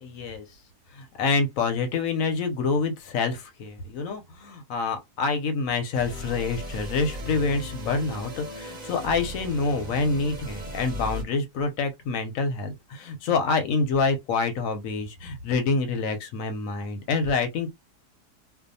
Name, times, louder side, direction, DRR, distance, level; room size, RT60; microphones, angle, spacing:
voice 1, 0.0-0.5 0.9-17.7, left 4 dB, 65° left, 0.9 m, -27 dB
sound 1, 5.9-11.2, equal, 45° right, 0.5 m, -37 dB
2.6 x 2.2 x 2.6 m
omnidirectional pair, 1.7 m